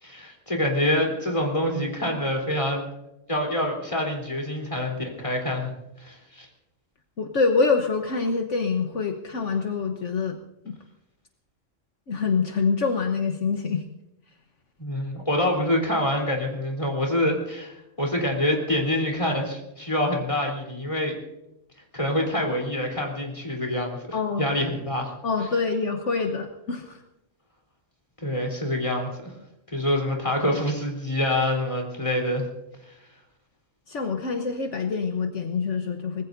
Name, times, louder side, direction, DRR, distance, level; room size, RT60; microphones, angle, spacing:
voice 1, 0.0-2.9 3.3-5.7 6.0-6.5 14.8-21.2 21.9-25.1 28.2-29.3 29.7-32.4 32.9-33.0, left 1 dB, 25° left, 0 dB, 3.8 m, -26 dB
voice 2, 7.2-10.4 10.6-10.8 12.1-13.8 24.1-24.5 25.2-27.0 33.9-36.2, left 4 dB, 65° left, 4 dB, 1.4 m, -25 dB
24.5 x 19.5 x 2.7 m, 0.90 s
omnidirectional pair, 1.3 m